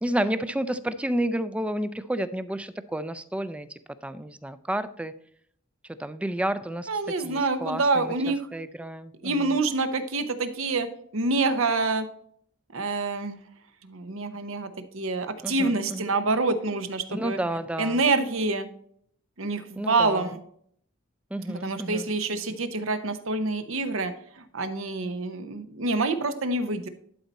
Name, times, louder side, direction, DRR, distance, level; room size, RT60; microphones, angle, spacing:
voice 1, 0.0-3.7 4.0-5.1 6.0-6.9 7.2-8.1 8.5-9.6 15.4-16.0 17.1-18.0 19.8-20.3 21.3-22.1, right 1 dB, 5° right, 12 dB, 0.3 m, -30 dB
voice 2, 6.9-8.4 9.2-10.9 11.1-12.1 12.7-13.4 13.8-17.4 17.8-18.7 19.4-20.4 21.5-26.9, right 3 dB, 75° right, 10 dB, 0.8 m, -27 dB
11.5 x 4.2 x 4.1 m, 0.65 s
head